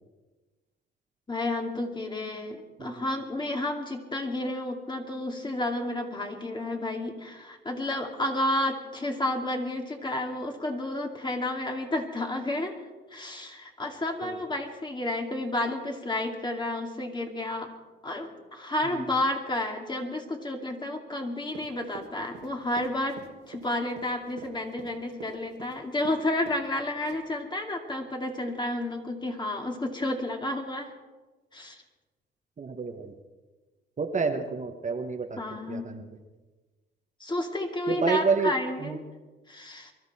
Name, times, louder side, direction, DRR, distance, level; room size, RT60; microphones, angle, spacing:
voice 1, 1.3-12.8 13.1-17.7 18.0-23.2 23.5-30.9 31.5-31.8 35.4-35.9 37.2-39.0 39.5-39.9, left 1 dB, 25° left, 2 dB, 2.4 m, -31 dB
Run, 21.5-26.2 26.5-26.7 27.0-27.4, right 7 dB, 80° right, 2.1 m, -46 dB
voice 2, 32.6-33.1 34.0-35.4 35.7-36.0 37.9-38.5 38.8-39.0, right 4 dB, 40° right, 5 dB, 1.3 m, -29 dB
23.0 x 13.0 x 4.3 m, 1.2 s
cardioid pair, 90°, 20 cm